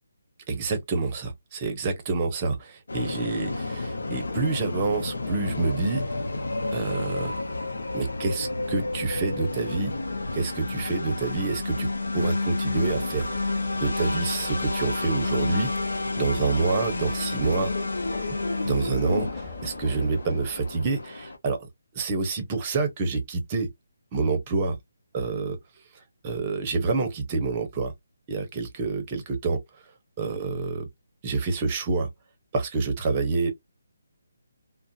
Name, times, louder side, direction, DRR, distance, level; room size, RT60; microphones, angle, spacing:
voice 1, 0.5-6.0 6.7-7.3 7.9-10.0 10.3-11.9 12.1-13.3 13.8-17.7 18.6-21.7 21.9-23.7 24.1-24.8 25.1-25.6 26.2-27.9 28.3-29.6 30.2-30.9 31.2-32.1 32.5-33.5, right 4 dB, 25° right, 0.7 m, -27 dB
sound 1, 2.9-21.4, left 2 dB, 85° left, 0.6 m, -30 dB
Train / Engine / Alarm, 12.7-21.0, left 4 dB, 20° left, 1.4 m, -43 dB
2.4 x 2.0 x 2.6 m
hypercardioid pair, 160°, 0 cm